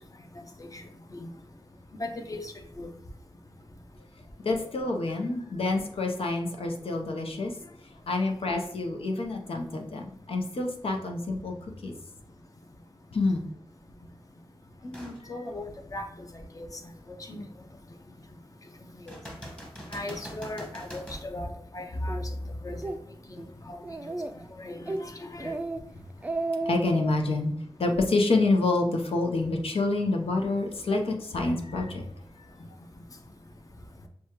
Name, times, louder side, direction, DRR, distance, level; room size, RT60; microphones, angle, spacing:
voice 1, 2.0-2.9 14.8-16.0 16.6-16.7 17.3-17.5 19.0-19.2 19.9-21.5 21.7-22.2 22.6-22.8 23.7-23.8 24.6-25.6, left 1 dB, 40° left, 4 dB, 0.7 m, -37 dB
voice 2, 4.4-7.5 8.1-11.9 13.1-13.5 26.7-27.5 27.8-32.0, left 2 dB, 85° left, 2 dB, 0.7 m, -27 dB
sound 1, 14.9-15.2 15.8-15.9 19.1-21.3 25.0-25.1, equal, 10° left, 1.1 m, -43 dB
Speech, 22.1-22.2 22.7-23.0 23.4-23.5 23.8-24.4 24.9-25.0 25.4-25.8 26.1-27.1, right 2 dB, 15° right, 0.3 m, -32 dB
6.1 x 2.3 x 2.9 m, 0.72 s
wide cardioid pair, 65°, 9 cm